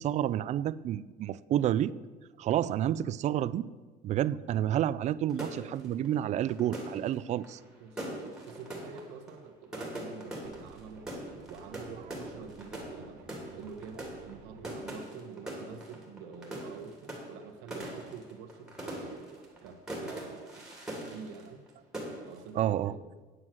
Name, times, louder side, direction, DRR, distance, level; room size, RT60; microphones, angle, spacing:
voice 1, 0.0-1.9 2.4-3.7 4.0-7.6 22.6-22.9, right 11 dB, 40° right, 18 dB, 0.4 m, -29 dB
sound 1, 5.3-21.7 21.9-22.5, right 1 dB, 5° right, 2.8 m, -42 dB
voice 2, 7.8-8.1 8.4-11.0 11.5-13.2 13.5-21.6 22.2-23.1, right 6 dB, 90° right, 6 dB, 1.3 m, -47 dB
sound 2, 10.4-14.8, right 6 dB, 60° right, 1.2 m, -55 dB
9.3 x 8.0 x 7.5 m, 1.3 s
cardioid pair, 140°, 18 cm